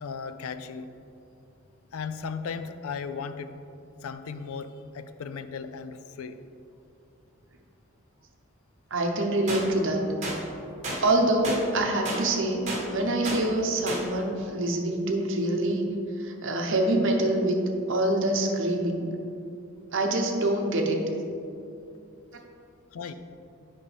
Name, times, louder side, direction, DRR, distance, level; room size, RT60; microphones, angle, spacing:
voice 1, 0.0-0.9 1.9-3.5 4.0-6.4 10.9-11.0 22.9-23.1, left 5 dB, 90° left, 11 dB, 0.4 m, -36 dB
voice 2, 8.9-10.2 11.0-15.9 16.2-17.6 17.9-19.1 19.9-21.0, right 1 dB, 65° right, 2 dB, 0.8 m, -25 dB
sound 1, 9.5-9.6 10.2-10.4 10.8-11.0 11.4-11.6 12.1-12.2 12.7-12.8 13.2-13.4 13.9-14.0, right 2 dB, 35° right, 1.3 m, -31 dB
8.6 x 5.4 x 3.4 m, 2.6 s
head